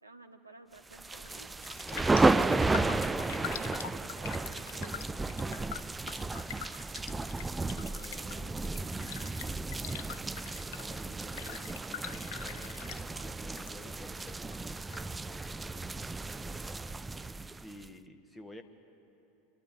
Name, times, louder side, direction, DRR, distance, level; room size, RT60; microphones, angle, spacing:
voice 1, 0.0-1.5 2.5-5.7, right 2 dB, 90° right, 6 dB, 1.1 m, -54 dB
sound 1, 0.9-17.9, right 3 dB, 15° right, 0.4 m, -33 dB
Raindrop, 1.2-1.4 1.6-13.7 14.0-15.0 15.4-15.5, left 12 dB, 65° left, 0.6 m, -44 dB
voice 2, 7.7-9.6 10.8-13.0 13.2-15.8 17.4-18.6, left 1 dB, 10° left, 6 dB, 1.7 m, -52 dB
26.0 x 12.0 x 9.7 m, 2.9 s
figure-of-eight pair, 80°, 0 cm